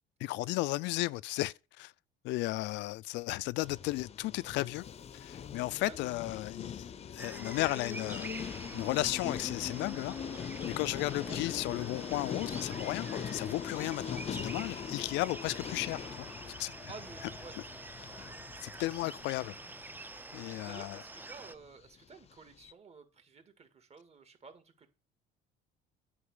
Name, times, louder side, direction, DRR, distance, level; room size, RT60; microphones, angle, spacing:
voice 1, 0.2-1.9 2.2-4.8 5.2-16.3 16.6-16.7 18.6-19.6 20.3-21.0, left 19 dB, 75° left, 0.4 m, -35 dB
sound 1, 3.6-21.0 21.2-21.5 21.8-21.9 22.1-22.3 22.6-22.7, left 8 dB, 35° left, 0.6 m, -42 dB
sound 2, 7.2-21.6, right 2 dB, 10° right, 0.5 m, -47 dB
voice 2, 16.9-18.2 20.6-24.9, right 5 dB, 35° right, 1.9 m, -52 dB
9.8 x 4.8 x 7.9 m
cardioid pair, 115°, 19 cm